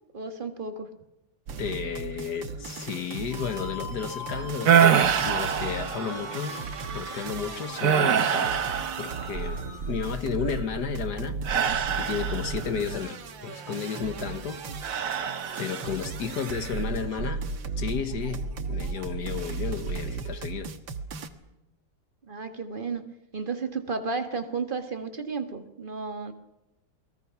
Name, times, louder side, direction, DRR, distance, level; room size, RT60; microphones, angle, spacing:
voice 1, 0.1-0.9 22.2-23.0 23.3-26.3, right 4 dB, 30° right, 1.8 m, -33 dB
sound 1, 1.5-21.3, right 4 dB, 85° right, 2.1 m, -36 dB
voice 2, 1.6-6.6 6.9-8.6 9.0-14.6 14.9-15.3 15.6-17.5 17.8-20.7, left 7 dB, 60° left, 1.8 m, -33 dB
sound 2, 3.3-10.1, left 2 dB, 90° left, 8.9 m, -43 dB
sound 3, 4.6-6.4 6.9-7.2 7.8-9.6 11.4-12.8 14.8-15.9 16.4-16.8, right 8 dB, 50° right, 1.3 m, -25 dB
29.0 x 20.5 x 6.0 m
omnidirectional pair, 2.0 m